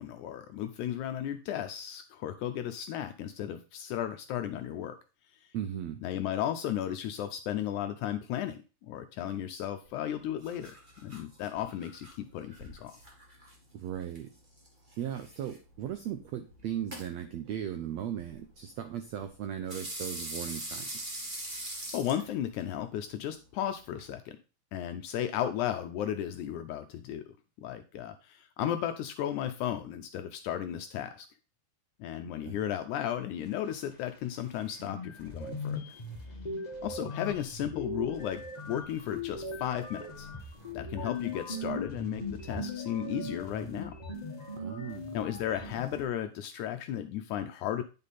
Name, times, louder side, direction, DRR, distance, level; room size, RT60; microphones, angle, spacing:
voice 1, 0.0-5.0 5.4-5.5 6.0-12.9 21.9-24.4 24.7-31.3 32.0-35.8 36.8-38.4 38.7-40.3 40.7-44.0 45.1-47.8, left 10 dB, 80° left, 7 dB, 1.8 m, -35 dB
voice 2, 5.5-6.0 13.7-14.3 15.0-21.2 32.4-32.6 44.6-45.2, right 10 dB, 80° right, 8 dB, 1.5 m, -37 dB
sound 1, 9.8-24.1, right 1 dB, 50° right, 0.5 m, -45 dB
sound 2, 34.4-34.5 34.8-46.0, left 2 dB, 35° left, 0.6 m, -39 dB
9.7 x 5.4 x 4.2 m, 0.33 s
omnidirectional pair, 4.0 m